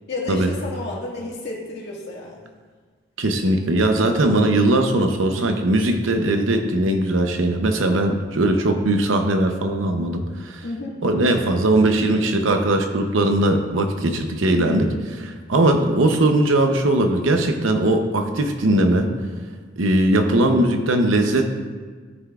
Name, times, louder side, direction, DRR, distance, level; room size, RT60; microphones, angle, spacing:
voice 1, 0.1-2.4 10.6-10.9 14.6-15.0 20.2-20.8, left 2 dB, 60° left, -3 dB, 1.8 m, -31 dB
voice 2, 3.2-10.6 11.0-14.9 15.5-19.1 19.8-21.5, right 1 dB, 85° right, 5 dB, 0.8 m, -19 dB
13.0 x 5.8 x 2.4 m, 1.5 s
head